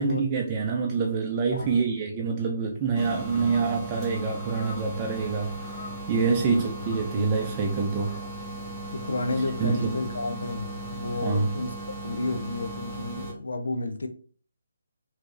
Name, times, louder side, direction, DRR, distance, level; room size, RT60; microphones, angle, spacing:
voice 1, 0.0-5.5 6.1-8.2 9.6-10.0 11.2-11.5, right 5 dB, 25° right, 0.5 m, -26 dB
sound 1, 2.5-9.5, left 3 dB, 35° left, 1.6 m, -48 dB
sound 2, 2.9-13.3, right 1 dB, 20° left, 1.0 m, -37 dB
voice 2, 8.9-11.8 12.0-14.1, left 2 dB, 75° left, 0.5 m, -31 dB
3.2 x 2.7 x 3.2 m
figure-of-eight pair, 150°, 0 cm